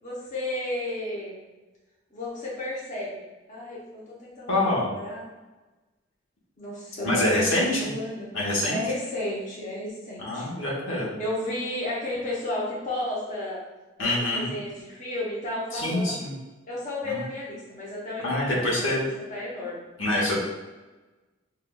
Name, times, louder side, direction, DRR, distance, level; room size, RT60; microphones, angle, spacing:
voice 1, 0.0-1.4 2.1-3.2 3.5-5.2 6.6-8.3 8.7-10.5 11.2-13.6 14.0-16.3 16.7-19.9, left 1 dB, 40° left, -6 dB, 0.8 m, -33 dB
voice 2, 4.5-4.9 7.0-7.9 8.3-8.8 10.2-11.1 14.0-14.5 15.7-16.3 17.1-17.2 18.2-19.1 20.0-20.4, left 1 dB, 80° left, -4 dB, 1.1 m, -25 dB
5.7 x 2.3 x 2.2 m, 1.2 s
head